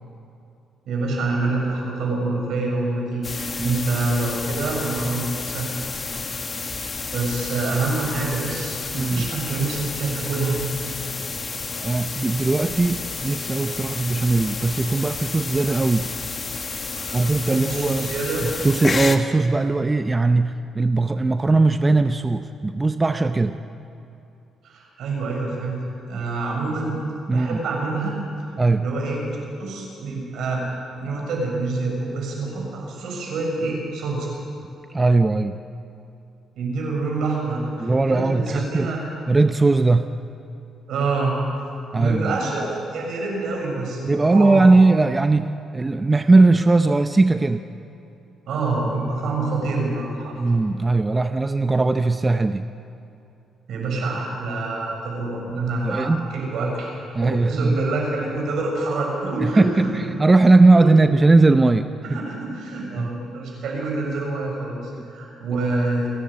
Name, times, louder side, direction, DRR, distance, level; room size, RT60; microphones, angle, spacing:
voice 1, 0.9-5.7 6.2-6.4 7.1-10.6 17.0-18.4 24.6-25.8 26.1-27.0 27.3-28.2 28.7-29.2 29.6-30.6 31.0-34.3 36.6-39.0 40.9-41.3 41.9-44.6 48.5-50.4 53.7-60.1 60.7-60.8 62.0-66.1, right 3 dB, 75° right, -1 dB, 7.0 m, -26 dB
sound 1, 3.2-19.2, left 4 dB, 35° left, 1.5 m, -31 dB
voice 2, 8.9-9.3 11.8-16.1 17.1-18.1 18.4-23.6 27.3-27.6 28.6-28.8 34.9-35.6 37.8-38.9 39.3-40.1 41.9-42.4 44.1-47.6 50.4-52.6 55.8-56.3 57.1-57.8 59.4-61.9 63.0-63.1 65.0-65.1, right 3 dB, 20° right, 9 dB, 0.6 m, -19 dB
29.0 x 11.0 x 8.6 m, 2.7 s
cardioid pair, 90°, 0 cm